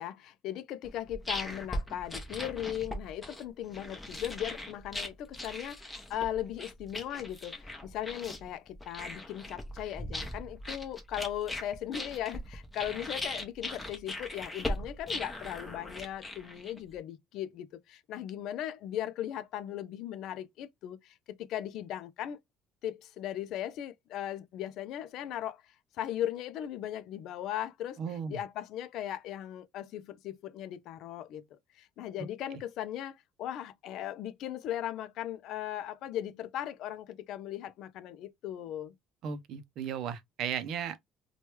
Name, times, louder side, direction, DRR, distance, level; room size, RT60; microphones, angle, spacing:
voice 1, 0.0-22.4 22.8-28.0 28.3-38.9, left 11 dB, 65° left, 0.4 m, -38 dB
sound 1, 0.8-16.9, left 1 dB, 10° left, 0.7 m, -39 dB
voice 2, 28.0-28.4 32.5-32.6 39.2-41.0, right 7 dB, 60° right, 0.5 m, -35 dB
3.1 x 2.2 x 2.9 m
cardioid pair, 140°, 0 cm